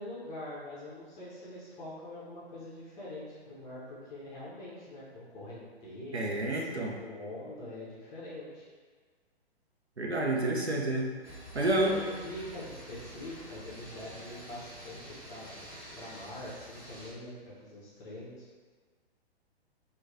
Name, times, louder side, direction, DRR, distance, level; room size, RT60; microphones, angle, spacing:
voice 1, 0.0-8.7 11.5-15.7 16.0-18.5, left 1 dB, 10° left, -8 dB, 0.5 m, -44 dB
voice 2, 6.1-7.0 10.0-11.1 11.5-11.9, right 2 dB, 90° right, 0 dB, 0.7 m, -29 dB
sound 1, 11.2-17.1, equal, 10° right, 0.9 m, -48 dB
3.0 x 2.2 x 3.5 m, 1.5 s
figure-of-eight pair, 120°, 32 cm